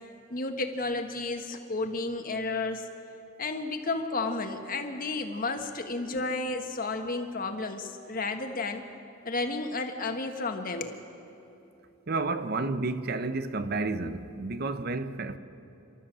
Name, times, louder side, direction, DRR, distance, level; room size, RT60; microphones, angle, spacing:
voice 1, 0.3-2.9 3.4-8.8 9.2-11.0, left 3 dB, 45° left, 1.5 m, -32 dB
voice 2, 12.1-15.4, right 3 dB, 50° right, 0.8 m, -31 dB
29.0 x 12.5 x 7.5 m
head